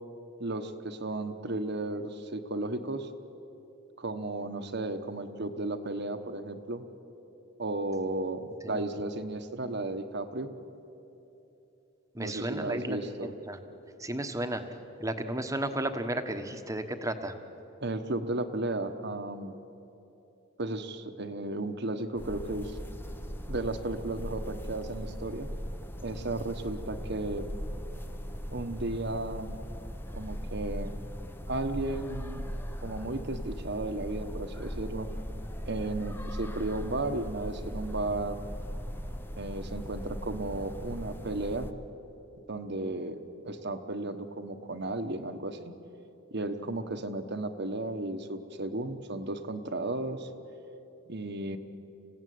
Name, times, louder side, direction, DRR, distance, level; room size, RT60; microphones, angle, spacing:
voice 1, 0.4-3.1 4.0-6.8 7.6-10.5 12.2-13.3 17.8-19.5 20.6-22.8 23.5-25.5 26.0-27.5 28.5-29.6 30.1-30.9 31.5-32.5 32.8-35.1 35.6-38.4 39.4-41.7 42.5-45.7 46.3-50.3 51.1-51.6, right 2 dB, 55° right, 7 dB, 1.2 m, -34 dB
voice 2, 12.1-13.0 13.4-13.6 14.0-14.6 15.0-17.3, right 1 dB, 15° right, 7 dB, 1.2 m, -33 dB
sound 1, 22.2-41.7, equal, 10° left, 0.8 m, -39 dB
27.0 x 16.5 x 9.4 m, 3.0 s
head